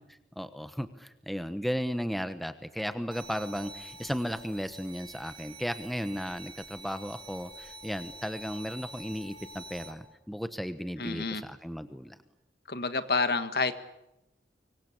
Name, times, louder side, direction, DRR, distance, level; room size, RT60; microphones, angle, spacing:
voice 1, 0.4-12.2, equal, ahead, 10 dB, 1.1 m, -35 dB
sound 1, 3.1-9.9, right 2 dB, 25° right, 5.9 m, -47 dB
voice 2, 11.0-11.4 12.7-13.7, left 3 dB, 60° left, 11 dB, 1.6 m, -28 dB
25.0 x 23.0 x 8.8 m, 0.91 s
head